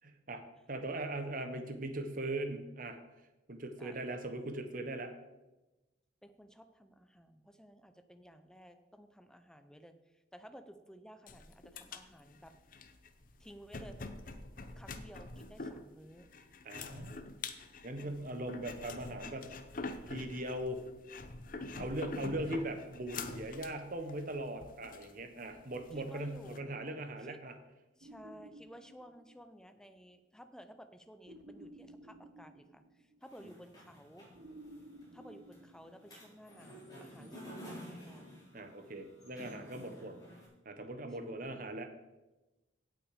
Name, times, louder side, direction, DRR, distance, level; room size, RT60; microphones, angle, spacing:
voice 1, 0.0-0.4 0.7-3.0 3.5-5.1 16.6-17.3 17.8-19.5 20.1-20.8 21.8-27.5 37.2-37.4 38.5-40.2 40.6-41.9, right 1 dB, 50° right, 7 dB, 1.3 m, -40 dB
voice 2, 6.2-12.5 13.4-14.0 14.8-16.3 18.0-18.6 21.7-22.4 25.9-26.9 27.2-27.4 28.0-34.3 35.1-38.4 39.8-40.4 41.2-41.8, equal, 5° left, 9 dB, 0.7 m, -55 dB
sound 1, 11.3-26.6, left 3 dB, 50° left, 0.7 m, -46 dB
sound 2, 28.0-29.7 31.3-33.4 34.3-36.5, right 1 dB, 70° right, 1.0 m, -55 dB
sound 3, 33.2-40.5, equal, 20° left, 4.6 m, -52 dB
16.5 x 6.1 x 5.1 m, 1.1 s
head